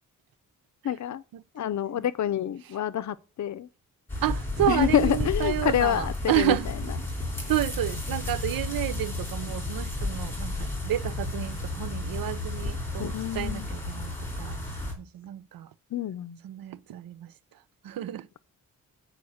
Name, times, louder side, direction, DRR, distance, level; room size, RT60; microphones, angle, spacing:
voice 1, 0.8-1.2 1.6-3.7 4.7-6.6 13.0-13.7 15.9-16.4, left 10 dB, 60° left, 0.6 m, -27 dB
sound 1, 4.1-14.9, left 2 dB, 5° left, 2.8 m, -32 dB
voice 2, 4.2-6.7 7.5-14.6 15.0-15.7 16.4-17.3 17.8-18.3, right 14 dB, 90° right, 0.6 m, -30 dB
8.5 x 5.1 x 6.3 m
wide cardioid pair, 175°, 34 cm